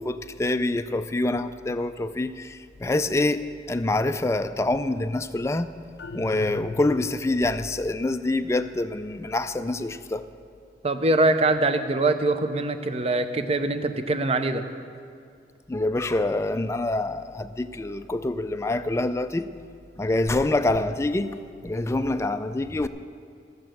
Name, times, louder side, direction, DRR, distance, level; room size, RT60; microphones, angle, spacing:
voice 1, 0.0-5.7 6.1-10.2 15.7-19.5 20.0-21.3 21.6-22.9, left 2 dB, 15° left, 10 dB, 0.3 m, -26 dB
sound 1, 6.0-7.5, left 4 dB, 75° left, 0.5 m, -38 dB
voice 2, 10.8-14.7, right 2 dB, 35° right, 9 dB, 0.7 m, -23 dB
15.0 x 6.8 x 7.7 m, 2.3 s
head